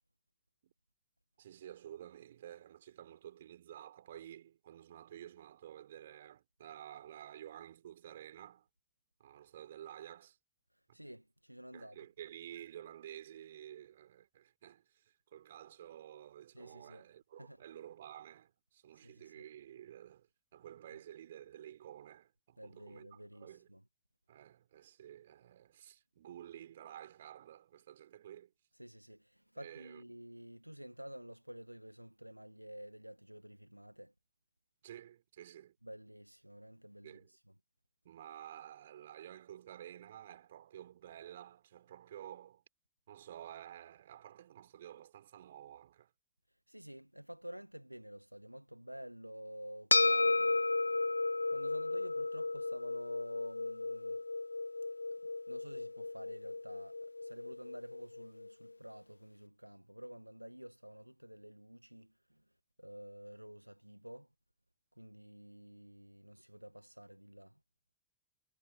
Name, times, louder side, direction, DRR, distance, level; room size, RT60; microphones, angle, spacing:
voice 1, 1.4-8.7 9.2-10.4 10.9-11.0 11.7-23.8 24.3-28.5 29.6-30.2 34.8-35.8 37.0-37.3 38.0-42.6 43.1-46.1, right 11 dB, 60° right, 5.6 m, -52 dB
voice 2, 10.7-12.0 16.5-17.0 17.4-17.6 18.9-19.4 22.6-23.8 28.7-34.1 35.8-37.4 46.7-50.6 50.9-51.1 51.5-54.2 55.1-55.2 55.5-62.4 62.8-64.3 65.0-67.6, equal, 90° right, 1.5 m, -51 dB
sound 1, 49.9-58.5, left 3 dB, 80° left, 0.7 m, -34 dB
figure-of-eight pair, 90°, 0 cm